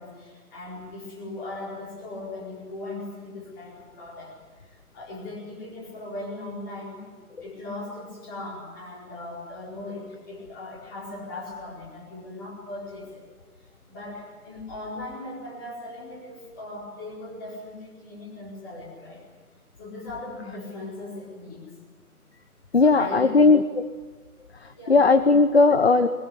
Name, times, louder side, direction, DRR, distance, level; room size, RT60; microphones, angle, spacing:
voice 1, 0.0-4.3 4.9-13.2 13.9-19.2 19.8-21.6 22.8-23.5 24.7-25.0, left 2 dB, 15° left, -4 dB, 4.7 m, -38 dB
voice 2, 22.7-23.9 24.9-26.1, left 3 dB, 45° left, 10 dB, 0.9 m, -17 dB
22.0 x 21.0 x 9.9 m, 1.3 s
figure-of-eight pair, 155°, 46 cm